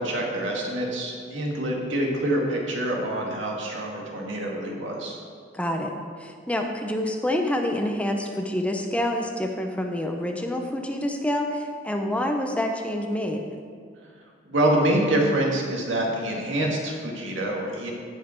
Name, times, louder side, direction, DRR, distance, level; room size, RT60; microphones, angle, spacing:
voice 1, 0.0-5.2 14.5-17.9, right 1 dB, 85° right, -1 dB, 2.0 m, -26 dB
voice 2, 5.5-13.5, left 1 dB, 5° left, 3 dB, 0.7 m, -27 dB
16.0 x 5.5 x 4.4 m, 2.1 s
head